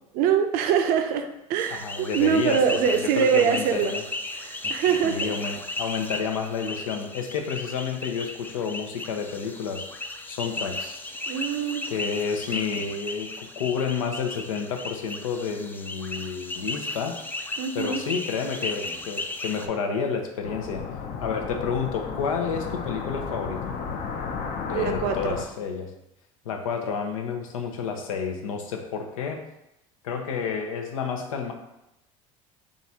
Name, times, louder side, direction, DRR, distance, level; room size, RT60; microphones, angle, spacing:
voice 1, 0.2-3.9 4.3-5.3 11.3-11.9 17.6-18.0 24.7-25.4, right 8 dB, 60° right, 6 dB, 0.6 m, -24 dB
Frogs croaking & crickets at night in jungle swamp Africa, 1.6-19.7, left 2 dB, 10° left, 0.4 m, -35 dB
voice 2, 1.7-4.0 5.0-9.8 10.3-11.0 11.9-13.3 13.6-17.2 17.7-20.8 21.2-23.6 24.7-25.9 26.4-29.4 30.0-31.5, left 6 dB, 90° left, 4 dB, 0.6 m, -30 dB
sound 1, 20.4-25.4, left 5 dB, 50° left, 0.6 m, -33 dB
3.9 x 2.5 x 4.1 m, 0.87 s
hypercardioid pair, 85°, 17 cm